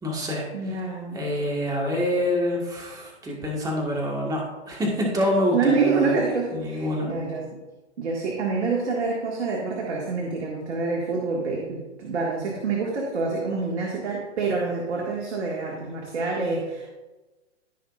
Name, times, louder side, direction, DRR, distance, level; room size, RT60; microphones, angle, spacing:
voice 1, 0.0-0.7 1.1-6.2 6.5-7.1, left 1 dB, 10° right, -2 dB, 1.8 m, -26 dB
voice 2, 0.5-1.2 5.5-7.5 8.0-16.9, right 4 dB, 70° right, -2 dB, 2.0 m, -27 dB
15.0 x 5.5 x 2.5 m, 1.1 s
hypercardioid pair, 130°, 35 cm